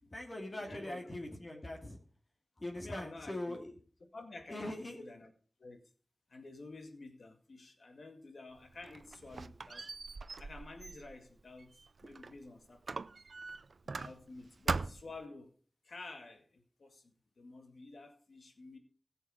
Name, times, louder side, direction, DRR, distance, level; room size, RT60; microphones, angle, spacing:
voice 1, 0.1-2.0 2.6-3.7 4.5-5.0, left 1 dB, 40° left, 2.9 m, -41 dB
voice 2, 0.7-1.1 2.8-3.6 4.1-5.3 5.6-5.8 6.3-9.9 10.4-13.0 14.0-15.5 15.8-18.8, left 3 dB, 80° left, 2.1 m, -51 dB
Squeak, 8.6-12.4 12.9-14.4 14.7-15.2, right 4 dB, 80° right, 0.5 m, -41 dB
16.0 x 6.8 x 5.1 m
wide cardioid pair, 50°, 0 cm